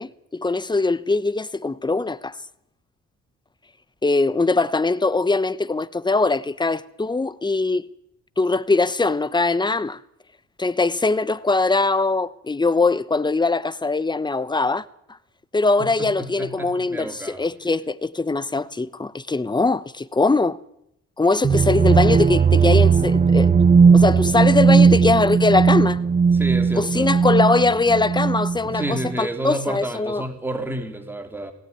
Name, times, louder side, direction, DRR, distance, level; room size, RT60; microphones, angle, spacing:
voice 1, 0.0-2.4 4.0-7.9 8.4-10.0 10.6-14.8 15.5-20.6 21.2-23.5 23.9-26.0 26.8-30.2, left 3 dB, 15° left, 0.9 m, -21 dB
voice 2, 16.0-17.5 26.3-27.2 28.6-31.5, right 1 dB, 5° right, 3.3 m, -30 dB
sound 1, 21.4-29.1, right 5 dB, 25° right, 0.8 m, -17 dB
19.0 x 17.5 x 9.5 m
cardioid pair, 90°, 30 cm